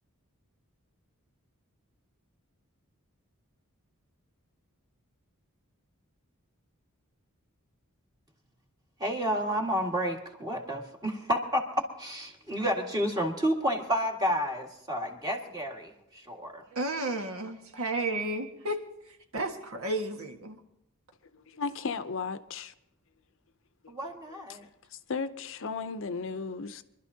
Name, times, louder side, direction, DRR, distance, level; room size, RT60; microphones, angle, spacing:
voice 1, 9.0-16.6 23.9-24.7, equal, 20° right, 1.8 m, -30 dB
voice 2, 16.7-18.8 19.1-20.6, right 2 dB, 70° right, 1.6 m, -32 dB
voice 3, 21.3-22.7 24.3-24.6 24.9-26.8, left 4 dB, 60° left, 0.7 m, -35 dB
25.0 x 12.0 x 2.8 m
head